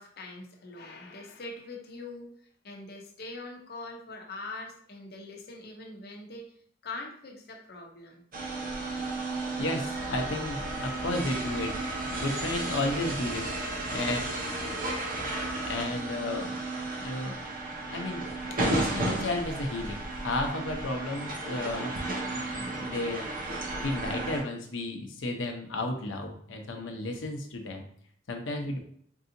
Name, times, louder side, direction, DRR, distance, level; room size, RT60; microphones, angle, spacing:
voice 1, 0.0-6.5 6.8-8.2 8.6-8.7, left 2 dB, 55° left, 1 dB, 0.8 m, -43 dB
sound 1, 8.3-24.4, right 2 dB, 50° right, 0.8 m, -34 dB
voice 2, 9.6-14.2 15.5-16.6 17.0-17.4 17.9-18.2 18.7-21.9 22.3-23.2 23.8-27.9 28.3-28.8, left 2 dB, 85° left, 3 dB, 0.7 m, -33 dB
sound 2, 9.9-15.8, equal, 70° right, 1.0 m, -40 dB
4.7 x 2.7 x 2.7 m, 0.62 s
head